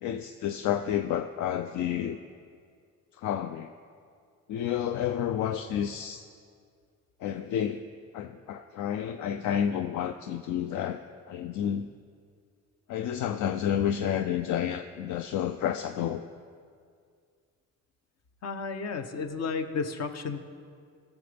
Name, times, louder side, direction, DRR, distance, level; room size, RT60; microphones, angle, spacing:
voice 1, 0.0-2.2 3.1-3.7 4.5-6.2 7.2-7.8 8.1-11.0 11.3-11.9 12.9-16.2, left 9 dB, 75° left, 7 dB, 0.5 m, -30 dB
voice 2, 18.4-20.4, left 5 dB, 60° left, 8 dB, 0.9 m, -32 dB
17.0 x 7.0 x 3.4 m, 2.2 s
cardioid pair, 90°, 30 cm